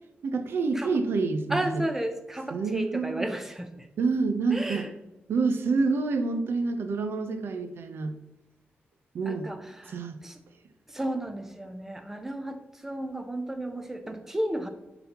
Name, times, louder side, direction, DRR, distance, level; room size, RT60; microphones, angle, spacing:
voice 1, 0.2-1.8 2.5-3.3 4.0-4.9 5.3-8.2 9.1-9.5 9.9-10.2, right 4 dB, 75° right, 7 dB, 0.7 m, -27 dB
voice 2, 1.5-3.9 4.5-4.9 9.3-10.4 10.9-14.7, right 1 dB, 10° right, 7 dB, 0.6 m, -33 dB
9.2 x 4.0 x 2.9 m, 0.97 s
wide cardioid pair, 160°, 4 cm